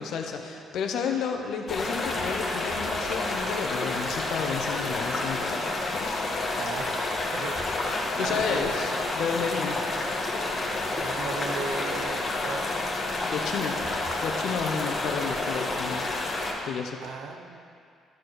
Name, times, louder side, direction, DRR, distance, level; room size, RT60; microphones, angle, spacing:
voice 1, 0.0-5.6 6.0-6.3 8.2-9.8 13.2-13.8 14.2-16.0 16.6-17.0, left 6 dB, 70° left, 4 dB, 1.0 m, -31 dB
sound 1, 1.7-16.5, left 2 dB, 40° left, 1.7 m, -29 dB
voice 2, 6.6-7.0 7.3-8.8 10.9-12.8 17.0-17.6, right 4 dB, 75° right, 4 dB, 0.9 m, -37 dB
12.5 x 4.4 x 6.6 m, 2.3 s
supercardioid pair, 70°, 0 cm